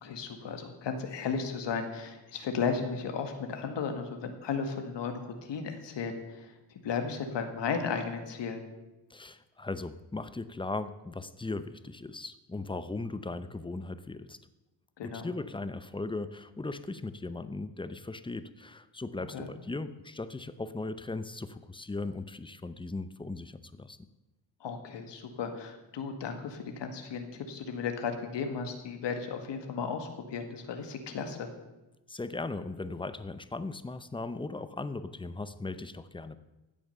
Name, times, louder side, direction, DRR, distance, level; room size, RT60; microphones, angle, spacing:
voice 1, 0.0-6.5 6.8-8.7 15.0-15.3 19.3-19.5 24.6-31.5, left 5 dB, 70° left, 5 dB, 2.0 m, -35 dB
voice 2, 9.1-14.4 15.0-24.0 32.1-36.4, left 3 dB, 10° left, 13 dB, 0.7 m, -38 dB
15.5 x 8.7 x 6.8 m, 1.0 s
cardioid pair, 110°, 44 cm